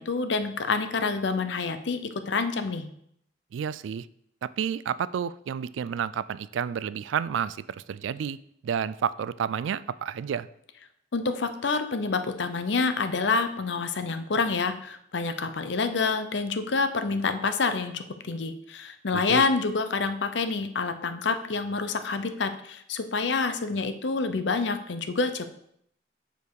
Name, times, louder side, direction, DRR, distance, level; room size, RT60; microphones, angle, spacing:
voice 1, 0.0-2.9 11.1-25.5, left 4 dB, 65° left, 9 dB, 0.7 m, -27 dB
voice 2, 3.5-4.1 4.4-8.4 8.6-10.5 19.1-19.4, right 8 dB, 80° right, 17 dB, 0.3 m, -30 dB
6.8 x 5.2 x 4.7 m, 0.71 s
head